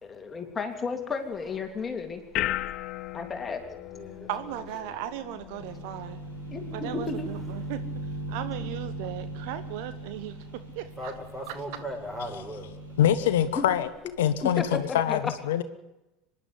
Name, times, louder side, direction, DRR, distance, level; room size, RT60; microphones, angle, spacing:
voice 1, 0.0-2.2 3.1-3.6 6.5-7.2 13.6-13.7 14.4-14.5 15.1-15.2, left 4 dB, 25° left, 3.1 m, -33 dB
sound 1, 1.3-14.9, left 15 dB, 50° left, 0.7 m, -41 dB
voice 2, 3.6-4.3 4.8-4.9 6.8-7.3 11.0-12.7, equal, 10° right, 6.4 m, -39 dB
voice 3, 4.3-6.2 6.7-7.8 8.3-11.1 11.5-11.6, right 12 dB, 60° right, 1.3 m, -37 dB
sound 2, 5.6-13.5, right 2 dB, 90° right, 4.6 m, -39 dB
voice 4, 13.0-13.9 14.2-15.6, left 10 dB, 70° left, 1.0 m, -24 dB
24.5 x 11.0 x 9.7 m
figure-of-eight pair, 75°, 0 cm